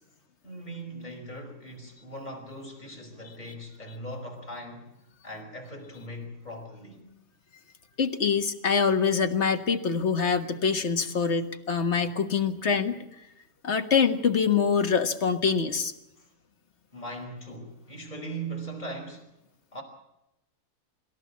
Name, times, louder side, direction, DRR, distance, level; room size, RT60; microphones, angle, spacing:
voice 1, 0.4-4.9 5.2-7.0 16.2-16.3 16.9-19.3 19.7-19.8, right 1 dB, 30° left, 5.5 m, -39 dB
voice 2, 8.0-13.0 13.6-15.9, left 6 dB, 50° left, 1.7 m, -25 dB
26.0 x 13.5 x 8.5 m
omnidirectional pair, 1.5 m